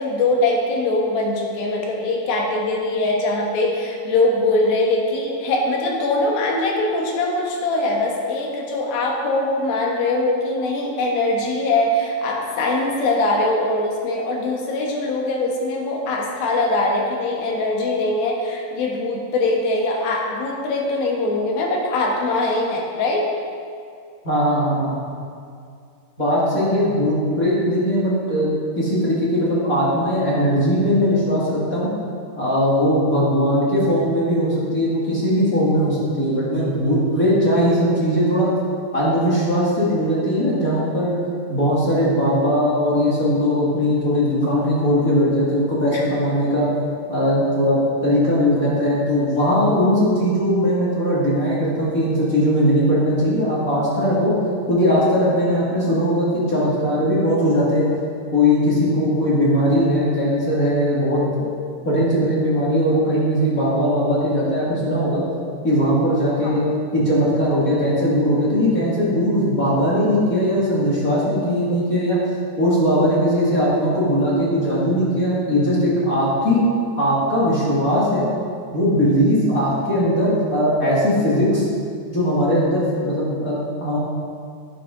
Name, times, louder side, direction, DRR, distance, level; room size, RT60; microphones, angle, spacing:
voice 1, 0.0-23.3 45.9-46.0 66.4-66.6, left 2 dB, 65° left, -1 dB, 3.0 m, -22 dB
voice 2, 24.2-24.9 26.2-31.9 32.4-38.5 38.9-41.2 41.5-46.6 47.1-54.3 54.7-57.9 58.3-61.5 61.8-65.2 65.6-66.6 66.9-72.2 72.6-76.6 76.9-78.3 78.7-81.6 82.1-84.0, equal, 30° left, -8 dB, 1.9 m, -19 dB
11.5 x 10.0 x 3.9 m, 2.3 s
omnidirectional pair, 4.8 m